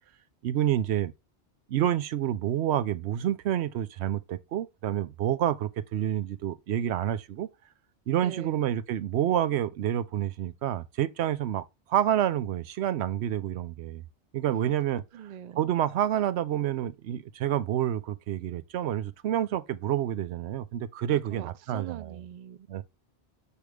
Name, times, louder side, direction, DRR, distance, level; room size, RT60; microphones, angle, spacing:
voice 1, 0.4-1.1 1.7-7.5 8.1-14.0 14.3-15.0 15.6-22.2 22.7-22.8, right 11 dB, 85° right, 0.9 m, -28 dB
voice 2, 8.2-8.6 14.5-14.7 15.1-15.7 21.1-22.8, right 10 dB, 55° right, 0.5 m, -43 dB
6.3 x 5.0 x 3.3 m
omnidirectional pair, 1.1 m